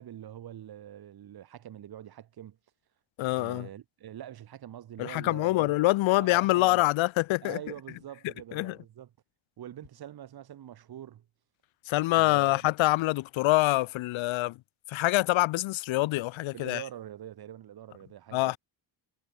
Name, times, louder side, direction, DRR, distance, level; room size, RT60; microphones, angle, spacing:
voice 1, 0.0-2.6 3.4-5.7 6.1-6.8 7.4-9.1 9.6-11.3 12.1-12.6 16.5-18.6, right 11 dB, 50° right, 1.2 m, -45 dB
voice 2, 3.2-3.7 5.0-7.6 8.5-8.8 11.9-14.6 14.9-16.8 18.3-18.6, left 18 dB, 75° left, 0.6 m, -25 dB
cardioid pair, 130°, 47 cm